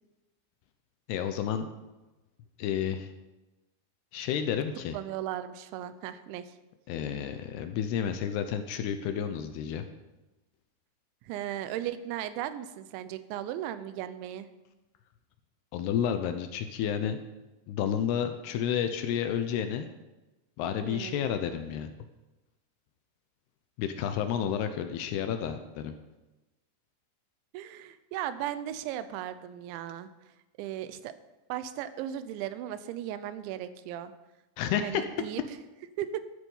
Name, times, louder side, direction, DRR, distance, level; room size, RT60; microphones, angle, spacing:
voice 1, 1.1-1.7 2.6-3.1 4.1-5.0 6.9-9.9 15.7-17.2 17.7-19.9 20.6-21.9 23.8-25.9 34.6-35.0, left 8 dB, 75° left, 8 dB, 2.6 m, -31 dB
voice 2, 4.9-6.6 11.2-14.5 20.8-21.3 27.5-30.1 30.6-31.1 31.5-34.1 34.8-35.4 36.0-36.3, right 11 dB, 85° right, 13 dB, 3.1 m, -36 dB
13.0 x 11.5 x 5.5 m, 1.1 s
omnidirectional pair, 5.2 m